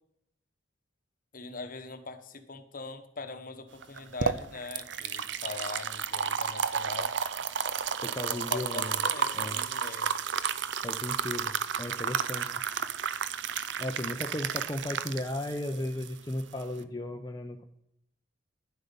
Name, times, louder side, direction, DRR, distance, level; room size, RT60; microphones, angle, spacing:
voice 1, 1.3-7.1 8.3-10.2, left 3 dB, 45° left, 8 dB, 1.0 m, -42 dB
sound 1, 3.8-16.8, right 7 dB, 65° right, 0.6 m, -32 dB
voice 2, 8.0-9.0 9.3-9.6 10.8-12.5 13.8-17.6, left 1 dB, 20° left, 3 dB, 0.6 m, -35 dB
10.5 x 7.8 x 5.4 m, 0.75 s
head